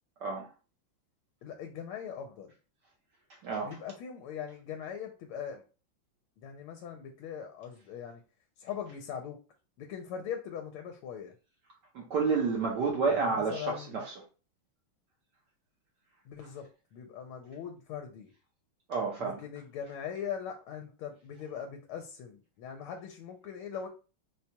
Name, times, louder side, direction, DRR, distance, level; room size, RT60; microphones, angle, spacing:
voice 1, 1.4-2.5 3.6-5.6 6.4-8.2 8.6-9.4 9.8-11.3 13.1-14.0 16.2-18.3 19.2-23.9, left 8 dB, 85° left, 1.5 m, -41 dB
voice 2, 3.4-3.8 11.9-14.1 18.9-19.4, right 4 dB, 65° right, 1.2 m, -30 dB
4.3 x 2.2 x 2.7 m
omnidirectional pair, 2.3 m